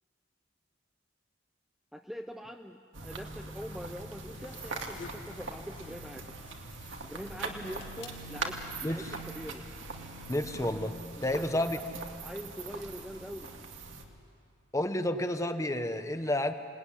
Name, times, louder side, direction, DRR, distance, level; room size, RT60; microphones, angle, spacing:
voice 1, 1.9-6.2 7.0-8.6 8.8-9.6 11.3-11.9 12.2-13.5, equal, ahead, 4 dB, 0.7 m, -43 dB
sound 1, 2.9-14.0, right 3 dB, 70° right, 2.4 m, -41 dB
sound 2, 4.1-8.8, left 4 dB, 70° left, 2.2 m, -52 dB
voice 2, 8.8-9.1 10.3-11.0 11.2-11.8 14.7-16.5, left 1 dB, 15° left, 8 dB, 1.0 m, -30 dB
28.0 x 19.5 x 9.9 m, 2.6 s
head